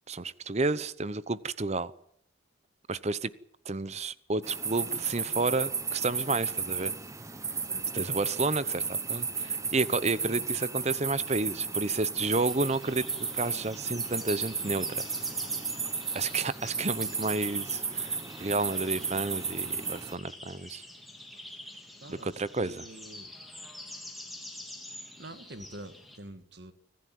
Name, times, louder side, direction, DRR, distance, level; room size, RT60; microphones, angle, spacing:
voice 1, 0.1-1.9 2.9-3.3 3.6-6.9 7.9-13.0 13.3-15.0 16.1-20.8 22.1-22.8, right 3 dB, 35° right, 0.8 m, -31 dB
sound 1, 4.4-20.1, right 5 dB, 15° right, 1.3 m, -33 dB
sound 2, 12.4-26.2, left 1 dB, ahead, 3.3 m, -47 dB
voice 2, 22.0-23.3 25.2-26.7, right 1 dB, 55° right, 1.9 m, -46 dB
25.0 x 15.0 x 9.3 m
head